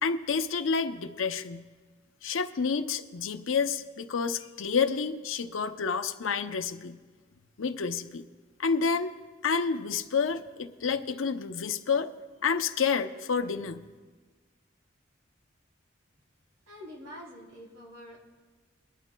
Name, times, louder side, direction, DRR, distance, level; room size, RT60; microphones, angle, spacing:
voice 1, 0.0-1.6 2.2-7.0 7.6-8.2 8.6-9.1 9.4-12.1 12.4-13.8, left 5 dB, 80° left, 8 dB, 0.6 m, -29 dB
voice 2, 16.7-18.2, equal, 85° right, -3 dB, 3.5 m, -46 dB
22.5 x 12.0 x 2.2 m, 1.4 s
head